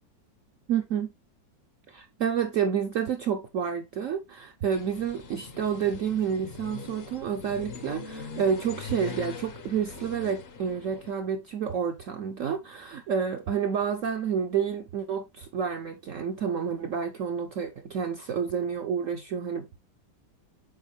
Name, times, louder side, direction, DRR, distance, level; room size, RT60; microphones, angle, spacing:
voice 1, 0.7-1.1 1.9-19.8, right 7 dB, 70° right, 0.7 m, -29 dB
sound 1, 4.7-11.1, left 5 dB, 50° left, 0.7 m, -42 dB
8.0 x 4.4 x 3.1 m
omnidirectional pair, 2.0 m